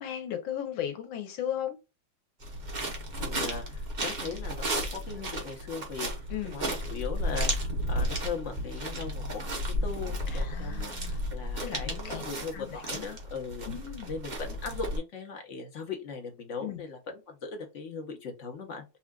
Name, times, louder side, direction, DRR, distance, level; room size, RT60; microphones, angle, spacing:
voice 1, 0.0-1.8 6.3-6.6 10.3-11.2 11.6-12.2 12.5-13.0 13.6-14.1 16.6-16.8, left 10 dB, 85° left, 1.6 m, -36 dB
sound 1, 2.4-15.0, equal, 40° right, 0.6 m, -33 dB
voice 2, 3.2-6.1 6.5-13.7 14.1-18.8, left 5 dB, 50° left, 1.0 m, -39 dB
5.4 x 2.4 x 2.3 m
omnidirectional pair, 2.1 m